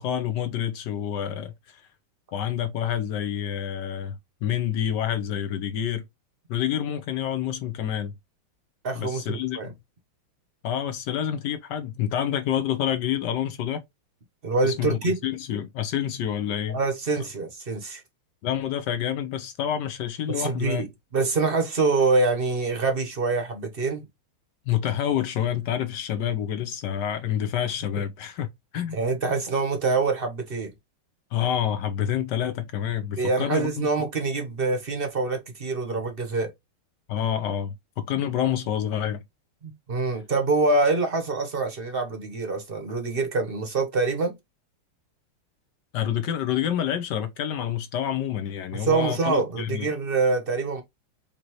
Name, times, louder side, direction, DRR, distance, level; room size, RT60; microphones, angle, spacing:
voice 1, 0.0-1.8 2.3-4.1 4.4-6.0 6.5-8.1 9.0-9.6 10.6-13.8 14.6-16.8 18.4-20.8 24.7-28.5 28.7-29.0 31.3-33.9 37.1-39.2 45.9-49.9, left 10 dB, 70° left, 1.1 m, -28 dB
voice 2, 8.8-9.7 14.4-15.1 16.7-18.0 20.3-24.1 28.9-30.7 33.2-36.5 39.6-44.4 48.7-50.8, right 3 dB, 40° right, 0.9 m, -25 dB
5.2 x 2.9 x 3.0 m
omnidirectional pair, 2.4 m